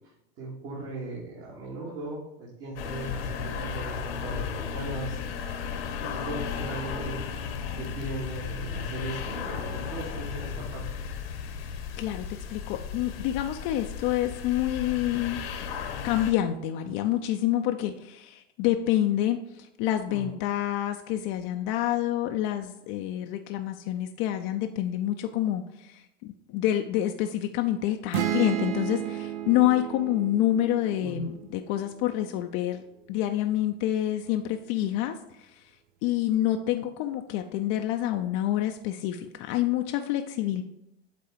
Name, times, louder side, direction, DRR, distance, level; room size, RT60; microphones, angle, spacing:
voice 1, 0.4-5.6 6.0-7.2 7.8-10.9 20.1-20.3 31.0-31.3, right 2 dB, 50° right, -5 dB, 2.2 m, -38 dB
sound 1, 2.8-16.3, left 7 dB, 70° left, 1.2 m, -35 dB
voice 2, 12.0-15.7 16.0-32.8 33.1-35.6 36.0-40.6, left 13 dB, 50° left, 5 dB, 0.6 m, -27 dB
sound 2, 28.1-31.9, right 10 dB, 70° right, 0.9 m, -32 dB
8.3 x 3.8 x 4.6 m, 0.85 s
hypercardioid pair, 90°, 31 cm